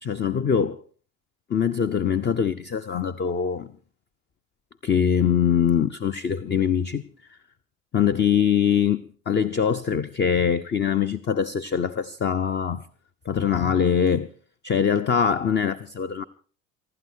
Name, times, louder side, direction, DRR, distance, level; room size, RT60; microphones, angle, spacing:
voice 1, 0.0-0.8 1.5-3.7 4.8-7.0 7.3-7.4 7.9-12.9 13.3-14.3 14.6-16.2, left 7 dB, 25° left, 0.8 m, -23 dB
24.5 x 12.0 x 4.6 m
hypercardioid pair, 65°, 40 cm